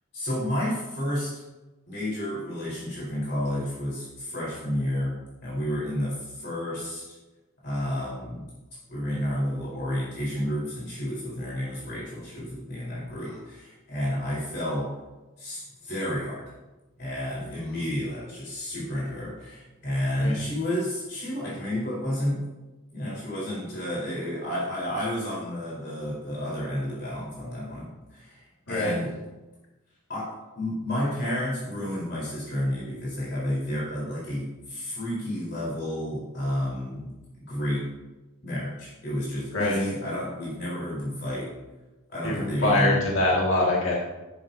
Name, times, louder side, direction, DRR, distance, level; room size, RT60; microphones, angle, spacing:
voice 1, 0.1-1.4 1.9-5.1 5.4-7.0 7.6-8.4 8.9-14.9 15.4-16.4 17.0-22.4 22.9-29.1 30.1-37.1 37.4-37.9 38.4-41.5 42.1-43.1, equal, 55° left, -7 dB, 3.9 m, -31 dB
voice 2, 39.5-39.8 42.2-44.0, left 2 dB, 75° left, -4 dB, 1.9 m, -24 dB
11.5 x 11.0 x 2.7 m, 1.1 s
head